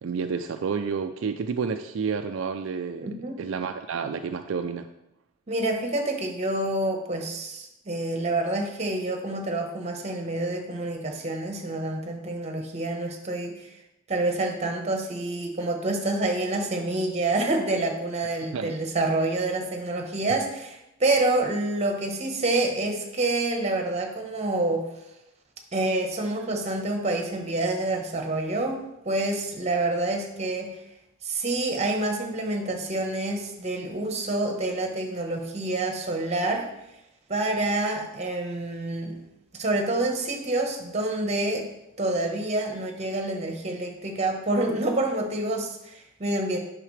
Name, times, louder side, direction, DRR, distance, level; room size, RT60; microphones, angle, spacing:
voice 1, 0.0-4.9 18.5-18.7 20.3-20.4, right 5 dB, 70° right, 6 dB, 0.4 m, -30 dB
voice 2, 3.0-3.4 5.5-13.7 14.1-24.8 25.7-30.7 31.2-36.7 37.3-39.2 39.5-41.7 42.0-46.6, right 2 dB, 35° right, 3 dB, 1.1 m, -27 dB
8.9 x 5.7 x 3.2 m, 0.89 s
head